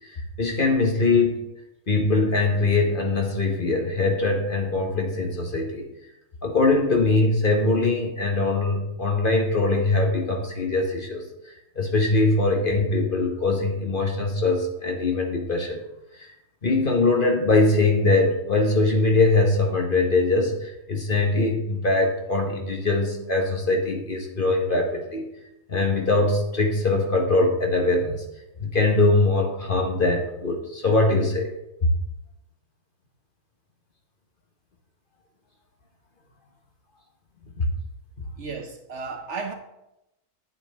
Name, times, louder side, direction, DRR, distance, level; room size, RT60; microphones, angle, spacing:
voice 1, 0.4-1.4 1.9-5.9 6.4-11.2 11.8-15.8 16.6-25.3 25.7-28.2 28.6-31.5 37.6-37.7, left 2 dB, 40° left, 1 dB, 1.2 m, -22 dB
voice 2, 38.4-39.5, right 4 dB, 55° right, 5 dB, 0.9 m, -33 dB
9.1 x 8.0 x 3.4 m, 0.90 s
omnidirectional pair, 1.6 m